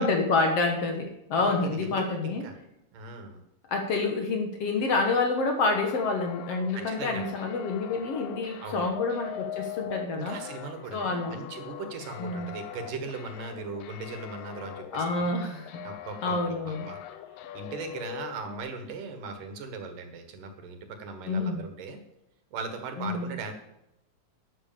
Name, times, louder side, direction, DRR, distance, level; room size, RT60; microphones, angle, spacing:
voice 1, 0.0-2.4 3.7-10.4 10.9-11.4 12.2-12.5 14.9-15.8 16.2-16.9 21.3-21.6 23.0-23.3, left 3 dB, 55° left, 3 dB, 2.1 m, -28 dB
voice 2, 1.4-2.6 2.9-3.4 6.7-7.3 8.6-8.9 10.1-15.3 15.8-17.0 17.5-22.0 22.5-23.5, right 4 dB, 75° right, 6 dB, 3.3 m, -39 dB
sound 1, 5.7-18.6, left 11 dB, 85° left, 2.6 m, -42 dB
12.0 x 8.8 x 7.0 m, 0.85 s
omnidirectional pair, 3.9 m